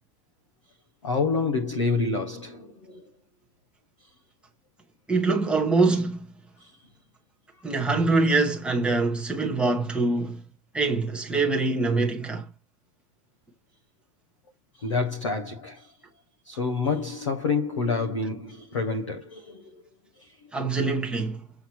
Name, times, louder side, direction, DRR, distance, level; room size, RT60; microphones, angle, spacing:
voice 1, 1.0-3.1 6.6-6.7 14.8-15.9 16.4-19.8 20.2-20.3, left 4 dB, 20° left, 0.4 m, -28 dB
voice 2, 5.1-6.3 7.6-10.4 10.7-12.5 20.5-21.4, right 3 dB, ahead, 0.8 m, -24 dB
7.8 x 5.7 x 4.1 m
supercardioid pair, 180°, 46 cm